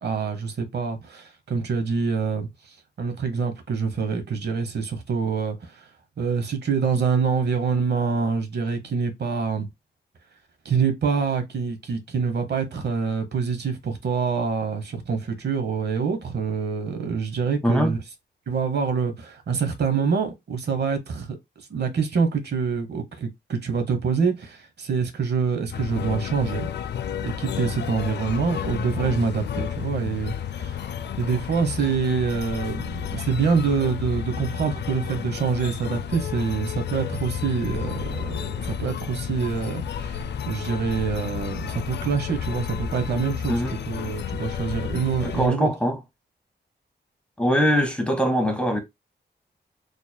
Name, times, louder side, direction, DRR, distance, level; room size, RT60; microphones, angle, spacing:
voice 1, 0.0-5.9 6.2-9.7 10.6-18.0 18.5-21.4 21.7-26.7 27.2-30.8 31.2-45.7, right 5 dB, 70° right, 0.9 m, -26 dB
voice 2, 17.6-17.9 43.5-43.7 45.2-46.0 47.4-48.8, equal, 5° left, 0.9 m, -22 dB
sound 1, 25.7-45.5, left 8 dB, 75° left, 0.4 m, -31 dB
4.2 x 3.2 x 2.2 m
wide cardioid pair, 135°, 18 cm